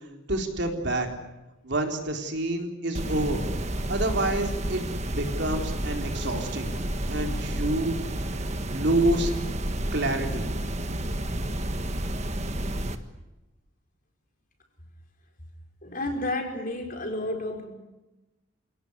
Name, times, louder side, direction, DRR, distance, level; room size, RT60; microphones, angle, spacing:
voice 1, 0.3-1.1 1.6-3.5 3.9-4.8 5.1-6.7 7.1-8.0 8.7-9.3 9.9-10.5, right 1 dB, 55° right, 3 dB, 4.0 m, -27 dB
sound 1, 2.9-13.0, right 1 dB, 30° right, 1.5 m, -30 dB
voice 2, 15.8-17.7, left 1 dB, 40° left, 3 dB, 4.8 m, -31 dB
28.5 x 17.5 x 10.0 m, 1.0 s
head